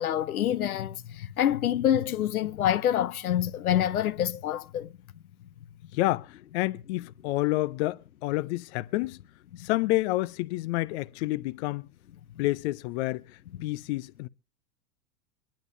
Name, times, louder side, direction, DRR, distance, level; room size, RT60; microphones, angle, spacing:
voice 1, 0.0-4.9, left 11 dB, 80° left, 0.8 m, -26 dB
voice 2, 5.9-9.2 9.6-11.9 12.4-14.3, left 18 dB, 50° left, 0.7 m, -29 dB
24.5 x 10.5 x 2.7 m
hypercardioid pair, 100°, 43 cm